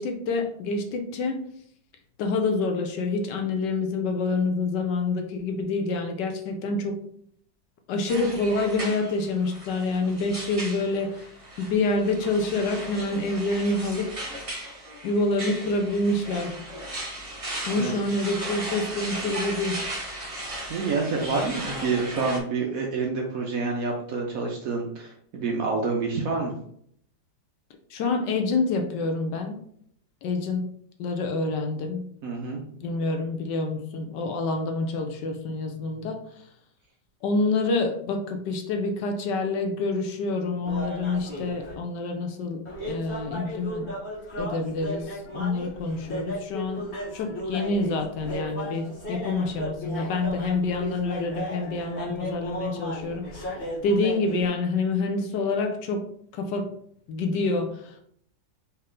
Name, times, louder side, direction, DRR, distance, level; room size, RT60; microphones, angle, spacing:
voice 1, 0.0-1.4 2.2-7.0 7.9-14.1 15.0-16.6 17.6-19.8 27.9-29.6 30.2-30.7 31.0-32.0 32.8-36.2 37.2-43.9 44.4-46.9 47.1-56.0 56.3-56.7 57.1-58.0, left 3 dB, 70° left, 4 dB, 1.3 m, -27 dB
sound 1, 8.1-22.4, right 1 dB, 25° right, 0.8 m, -36 dB
voice 2, 20.6-26.5 32.2-32.6, right 4 dB, 60° right, 1 dB, 1.0 m, -28 dB
sound 2, 40.6-41.7 42.7-54.5, equal, 30° left, 1.4 m, -35 dB
4.4 x 3.1 x 3.7 m, 0.65 s
omnidirectional pair, 2.0 m